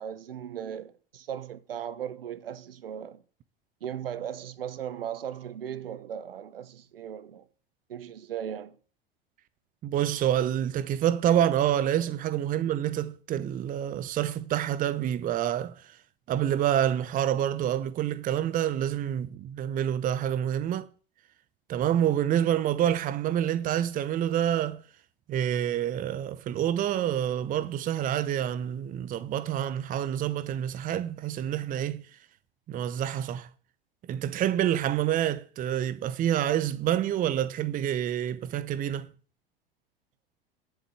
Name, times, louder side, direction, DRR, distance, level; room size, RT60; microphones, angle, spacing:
voice 1, 0.0-3.2 3.8-7.4 7.9-8.8, right 9 dB, 70° right, 1.1 m, -37 dB
voice 2, 9.8-16.0 16.3-20.9 21.7-24.8 25.3-32.0 32.7-33.5 34.1-39.1, right 10 dB, 25° right, 0.9 m, -27 dB
10.5 x 8.2 x 7.8 m
figure-of-eight pair, 85°, 30 cm